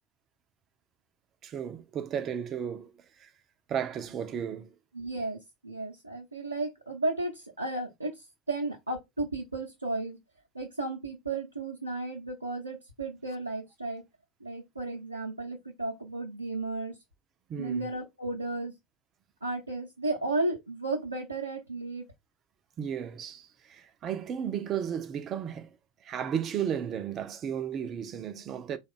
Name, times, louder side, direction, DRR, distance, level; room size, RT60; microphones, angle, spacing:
voice 1, 1.4-3.3 3.7-4.7 17.5-17.9 22.8-28.8, right 8 dB, 40° right, 0.5 m, -34 dB
voice 2, 4.9-10.2 10.5-14.0 14.4-16.9 17.6-18.7 19.4-22.0, right 2 dB, 90° right, 0.7 m, -34 dB
3.8 x 2.3 x 3.6 m
figure-of-eight pair, 75°, 0 cm